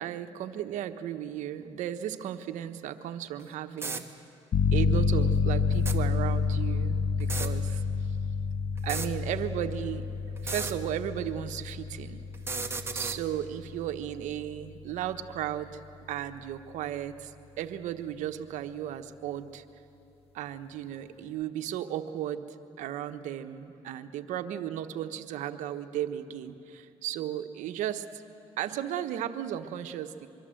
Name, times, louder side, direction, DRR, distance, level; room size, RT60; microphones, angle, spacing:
voice 1, 0.0-4.0 4.7-7.8 8.8-10.0 10.4-12.2 12.9-15.8 16.1-19.6 20.3-22.4 22.8-28.2 28.6-30.3, right 11 dB, 80° right, 9 dB, 1.2 m, -35 dB
sound 1, 3.4-3.5 3.8-4.0 5.7-6.0 7.2-7.5 8.8-9.1 10.4-10.7 12.3-13.2, right 3 dB, 20° right, 1.8 m, -34 dB
sound 2, 4.5-15.0, left 5 dB, 50° left, 1.2 m, -29 dB
24.0 x 24.0 x 7.8 m, 2.7 s
cardioid pair, 85°, 13 cm